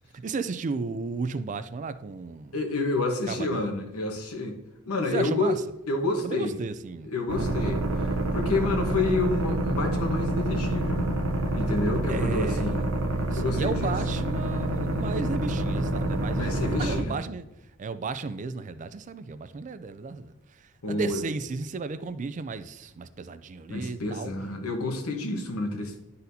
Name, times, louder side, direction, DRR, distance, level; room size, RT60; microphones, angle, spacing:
voice 1, 0.1-2.5 3.3-3.6 5.1-5.6 6.2-7.1 12.1-12.7 13.3-17.5 17.8-20.3 20.9-24.3, right 4 dB, 35° right, 0.3 m, -34 dB
voice 2, 2.5-4.6 4.8-5.5 5.9-6.6 7.0-11.3 11.5-12.9 13.4-14.0 16.3-17.2 20.8-21.3 23.7-26.0, left 2 dB, 70° left, 1.1 m, -29 dB
sound 1, 7.3-17.0, right 1 dB, 65° right, 0.7 m, -27 dB
11.0 x 4.1 x 2.7 m
head